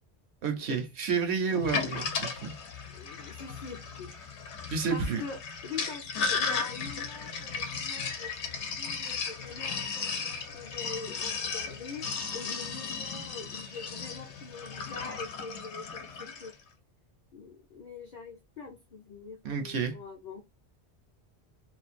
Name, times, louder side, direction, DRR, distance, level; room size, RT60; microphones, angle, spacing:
voice 1, 0.4-2.5 4.7-5.2 19.4-20.0, right 5 dB, 75° right, 0.9 m, -30 dB
Sink (filling or washing), 1.5-16.5, left 5 dB, 80° left, 0.9 m, -35 dB
voice 2, 2.9-4.3 4.9-12.0 12.3-16.5 17.3-20.4, left 4 dB, 50° left, 0.6 m, -44 dB
2.5 x 2.0 x 2.4 m
omnidirectional pair, 1.1 m